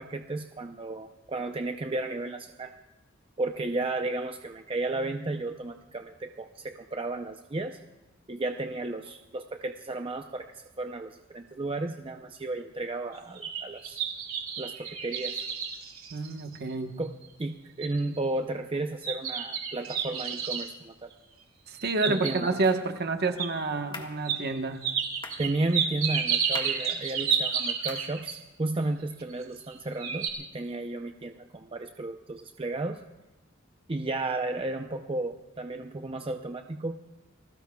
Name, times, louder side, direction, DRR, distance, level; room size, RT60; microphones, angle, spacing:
voice 1, 0.0-2.7 3.4-7.8 8.3-14.0 14.6-15.4 17.0-17.1 17.4-21.1 22.1-22.5 25.4-33.0 33.9-37.0, right 2 dB, 25° right, 5 dB, 0.6 m, -33 dB
sound 1, 13.1-16.7 17.2-17.3 17.8-18.2 19.0-20.7 21.7-22.7 23.4-23.5 24.2-24.4 24.8-28.3 29.3-29.7 30.0-30.3, right 7 dB, 90° right, 2.9 m, -31 dB
voice 2, 16.1-16.9 21.7-24.8, right 3 dB, 50° right, 6 dB, 1.2 m, -29 dB
sound 2, 22.6-22.9 23.9-24.2 25.2-25.5 26.5-26.9 27.9-28.1, left 3 dB, 25° left, 1.6 m, -42 dB
29.5 x 20.0 x 2.3 m, 1.1 s
head